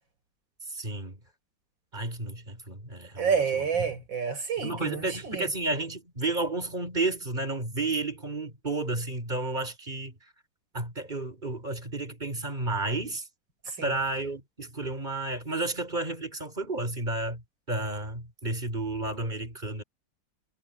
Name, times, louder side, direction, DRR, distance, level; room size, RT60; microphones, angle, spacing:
voice 1, 0.7-1.2 1.9-3.4 4.6-10.2 10.7-13.2 13.8-17.4 17.7-19.8, right 2 dB, 25° right, 5.8 m, -31 dB
voice 2, 3.2-5.5 13.7-14.0, right 6 dB, 80° right, 6.4 m, -29 dB
omnidirectional pair, 2.0 m